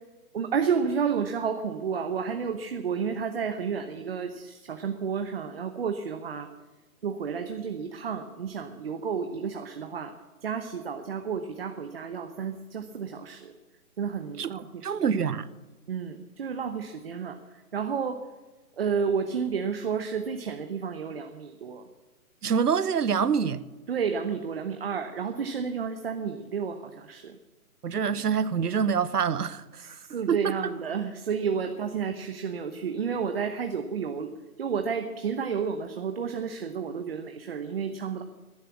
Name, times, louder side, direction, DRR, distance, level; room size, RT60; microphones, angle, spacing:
voice 1, 0.3-6.5 7.0-10.1 10.4-13.5 14.0-14.9 15.9-17.4 17.7-18.2 18.8-21.8 23.9-27.4 29.8-34.3 34.6-38.2, right 6 dB, 40° right, 0.9 m, -31 dB
voice 2, 14.8-15.5 22.4-23.6 27.8-30.0 30.3-30.7, right 6 dB, 85° right, 1.0 m, -26 dB
13.0 x 11.0 x 8.5 m
hypercardioid pair, 160°, 45 cm